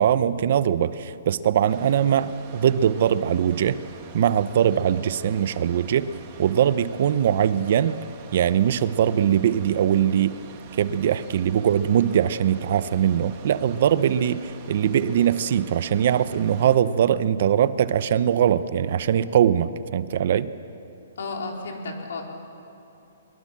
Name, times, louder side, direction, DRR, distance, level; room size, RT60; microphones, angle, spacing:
voice 1, 0.0-3.8 4.1-6.1 6.4-8.0 8.3-10.3 10.8-20.5, right 9 dB, 50° right, 15 dB, 0.8 m, -21 dB
sound 1, 1.7-16.8, right 6 dB, 30° right, 2.2 m, -44 dB
voice 2, 21.2-22.2, left 3 dB, 75° left, 1 dB, 4.4 m, -32 dB
22.5 x 22.0 x 7.5 m, 2.9 s
hypercardioid pair, 165°, 0 cm